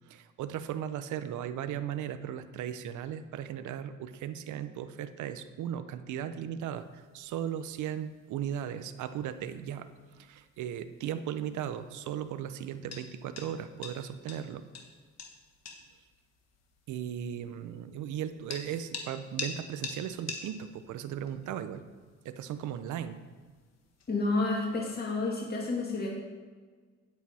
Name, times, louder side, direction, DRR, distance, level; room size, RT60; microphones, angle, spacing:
voice 1, 0.1-9.9 10.2-14.6 16.9-21.8 22.2-23.2, right 9 dB, 75° right, 11 dB, 0.6 m, -37 dB
sound 1, 6.6-24.9, left 5 dB, 60° left, 1.5 m, -48 dB
voice 2, 24.1-26.1, left 3 dB, 30° left, -2 dB, 1.8 m, -30 dB
9.1 x 8.2 x 4.2 m, 1.5 s
cardioid pair, 90°, 30 cm